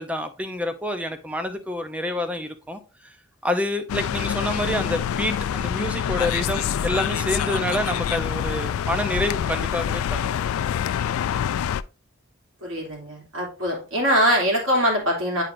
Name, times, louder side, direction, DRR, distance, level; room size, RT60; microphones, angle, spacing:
voice 1, 0.0-3.1 3.4-10.3, left 1 dB, 5° right, 0.6 m, -28 dB
sound 1, 3.9-11.8, left 9 dB, 75° left, 0.3 m, -26 dB
voice 2, 12.6-15.4, equal, 65° right, 2.8 m, -22 dB
9.4 x 4.4 x 2.6 m
head